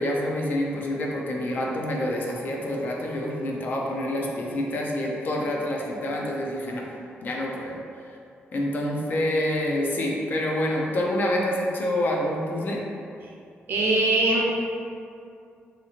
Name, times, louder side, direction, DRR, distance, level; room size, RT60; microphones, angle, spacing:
voice 1, 0.0-6.9 7.2-7.8 8.5-12.8, left 1 dB, 50° left, -1 dB, 0.4 m, -27 dB
voice 2, 13.7-14.4, right 2 dB, 60° right, -3 dB, 0.5 m, -21 dB
2.8 x 2.4 x 2.8 m, 2.4 s
wide cardioid pair, 160°, 4 cm